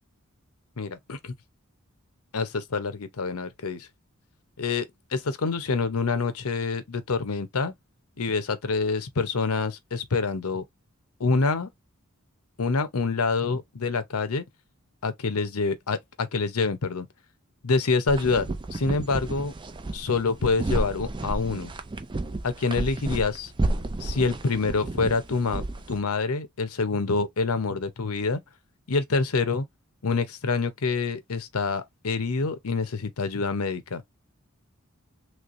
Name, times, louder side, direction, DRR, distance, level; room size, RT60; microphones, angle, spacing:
voice 1, 0.8-1.3 2.3-3.9 4.6-7.7 8.2-10.6 11.2-11.7 12.6-14.4 15.0-17.1 17.6-19.5 19.9-21.7 22.4-23.5 24.0-25.6 25.9-28.4 28.9-29.7 30.0-34.0, left 4 dB, 90° left, 0.8 m, -26 dB
sound 1, 18.1-26.0, right 2 dB, 20° right, 0.4 m, -31 dB
3.2 x 3.2 x 2.5 m
head